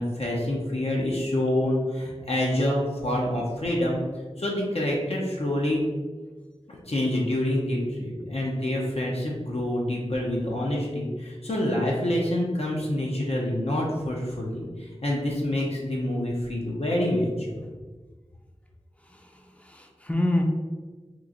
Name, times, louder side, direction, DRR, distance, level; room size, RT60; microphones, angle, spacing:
voice 1, 0.0-4.0 4.4-5.8 6.7-17.5, left 1 dB, 60° left, -3 dB, 0.7 m, -27 dB
voice 2, 19.0-20.4, left 1 dB, 10° left, 2 dB, 0.5 m, -28 dB
3.0 x 2.4 x 3.7 m, 1.3 s
wide cardioid pair, 40°, 12 cm